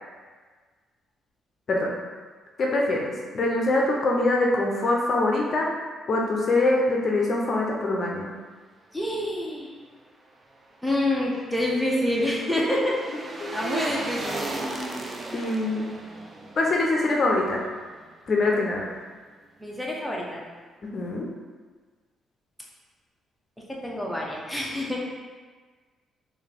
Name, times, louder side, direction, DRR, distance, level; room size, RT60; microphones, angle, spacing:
voice 1, 2.6-5.7 6.1-8.3 12.7-12.8 13.4-13.5 15.3-15.9 16.6-17.6 18.3-18.9 20.9-21.3, left 2 dB, 50° left, -1 dB, 0.5 m, -24 dB
voice 2, 8.9-9.7 10.8-12.9 13.5-14.5 19.6-20.4 23.7-25.0, left 1 dB, ahead, -4 dB, 0.7 m, -27 dB
sound 1, 10.9-18.1 18.4-18.5, right 2 dB, 30° right, 0.4 m, -36 dB
3.6 x 2.6 x 3.3 m, 1.5 s
cardioid pair, 90°, 0 cm